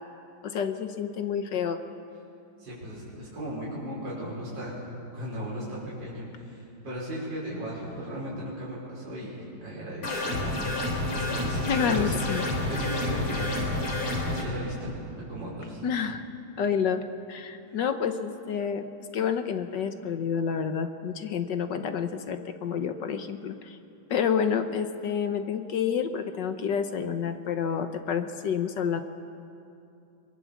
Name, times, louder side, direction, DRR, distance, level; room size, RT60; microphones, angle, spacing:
voice 1, 0.4-1.8 11.7-12.4 15.8-16.3 16.6-17.0 17.3-18.9 19.1-23.8 24.1-29.0, left 7 dB, 60° left, 8 dB, 1.5 m, -29 dB
voice 2, 2.6-4.8 5.1-10.6 11.1-12.2 12.7-14.0 14.2-15.8, equal, 55° right, -7 dB, 5.9 m, -37 dB
sound 1, 10.0-14.4, left 2 dB, 85° left, 4.2 m, -29 dB
23.5 x 22.0 x 7.3 m, 2.6 s
omnidirectional pair, 2.4 m